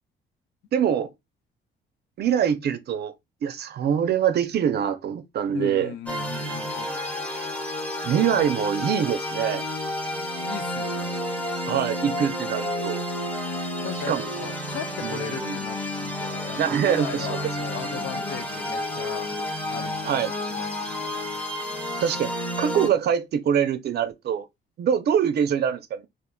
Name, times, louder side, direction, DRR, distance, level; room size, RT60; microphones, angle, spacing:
voice 1, 0.7-1.1 2.2-3.1 3.4-5.9 6.9-7.5 8.0-9.7 11.6-13.0 14.1-14.3 15.0-15.6 16.6-17.4 20.0-20.3 22.0-22.3 22.6-24.5 24.8-26.0, right 8 dB, 55° right, 0.5 m, -24 dB
voice 2, 5.5-6.9 10.5-11.2 13.8-19.3 19.7-21.2 22.8-23.0, left 8 dB, 80° left, 0.5 m, -38 dB
sound 1, 6.1-22.9, left 1 dB, 10° left, 0.7 m, -30 dB
3.6 x 2.4 x 2.2 m
cardioid pair, 90°, 20 cm